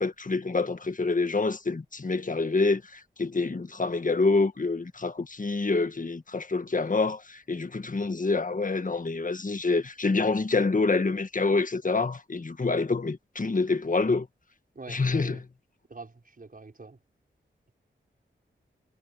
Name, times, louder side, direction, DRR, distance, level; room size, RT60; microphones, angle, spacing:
voice 1, 0.0-14.3 14.9-15.4, left 3 dB, 40° left, 1.7 m, -27 dB
voice 2, 14.7-15.4 15.9-17.0, right 3 dB, 45° right, 5.5 m, -45 dB
cardioid pair, 50°, 20 cm